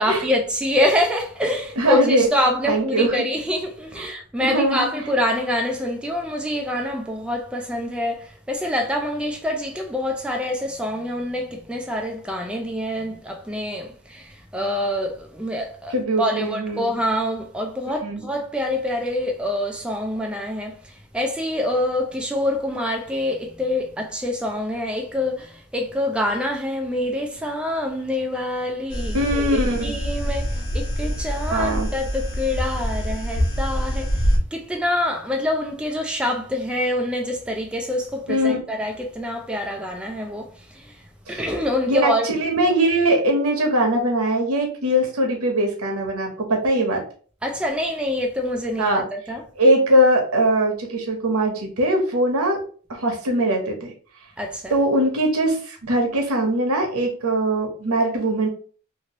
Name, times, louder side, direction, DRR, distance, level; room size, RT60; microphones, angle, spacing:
voice 1, 0.0-42.3 47.4-49.4 54.4-54.8, left 1 dB, 5° right, 0.3 m, -26 dB
voice 2, 1.8-2.3 2.7-3.1 4.4-4.9 15.9-16.8 18.0-18.2 29.1-29.9 31.5-31.9 38.3-38.6 41.3-41.4 41.9-47.0 48.8-49.0 49.6-52.6 52.9-53.9 54.7-58.5, right 1 dB, 75° right, 1.0 m, -21 dB
sound 1, 28.9-34.4, equal, 55° left, 1.0 m, -25 dB
2.9 x 2.6 x 2.9 m
head